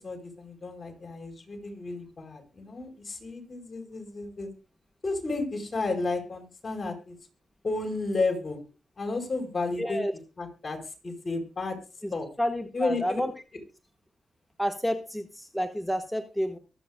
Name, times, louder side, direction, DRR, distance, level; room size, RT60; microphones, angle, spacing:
voice 1, 0.0-4.5 5.0-7.2 7.6-8.6 9.0-10.0 10.4-10.8 11.0-11.8 12.1-12.3 12.7-13.2, left 3 dB, 40° left, 5 dB, 4.8 m, -32 dB
voice 2, 9.8-10.1 12.0-12.1 12.4-13.3 14.6-16.6, equal, ahead, 5 dB, 1.2 m, -30 dB
23.5 x 8.6 x 2.2 m, 0.32 s
cardioid pair, 90°, 0 cm